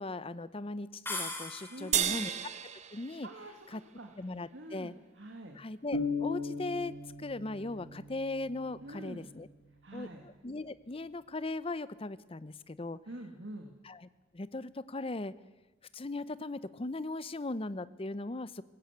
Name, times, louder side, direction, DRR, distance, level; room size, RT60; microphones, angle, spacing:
voice 1, 0.0-2.3 2.9-3.3 3.7-3.8 4.2-4.9 5.6-9.5 9.9-13.0 13.8-14.1 14.3-15.3 15.9-18.6, left 2 dB, 30° left, 15 dB, 0.7 m, -38 dB
sound 1, 1.1-2.1, left 2 dB, 10° left, 3.0 m, -39 dB
voice 2, 1.7-2.3 3.2-4.1 4.5-5.6 8.8-9.3 9.8-10.2 13.1-13.7, right 1 dB, 70° right, 3 dB, 2.1 m, -46 dB
sound 2, 1.9-4.5, right 9 dB, 35° right, 0.9 m, -34 dB
sound 3, 5.9-9.7, left 4 dB, 85° left, 1.5 m, -38 dB
19.5 x 16.5 x 8.2 m, 1.1 s
head